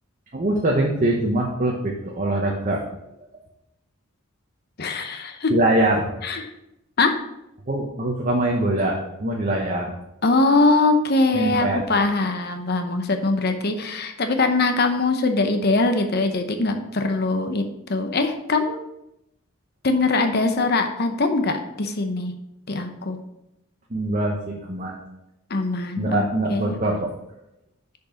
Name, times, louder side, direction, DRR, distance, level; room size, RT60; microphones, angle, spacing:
voice 1, 0.3-2.8 5.5-6.1 7.7-9.9 11.3-11.8 23.9-25.0 26.0-27.1, right 1 dB, 35° right, -1 dB, 0.9 m, -23 dB
voice 2, 4.8-5.6 6.2-6.5 7.0-7.2 10.2-17.6 17.9-18.8 19.8-22.3 22.7-23.2 25.5-26.8, left 3 dB, 45° left, 6 dB, 0.8 m, -22 dB
6.6 x 5.3 x 5.0 m, 0.86 s
head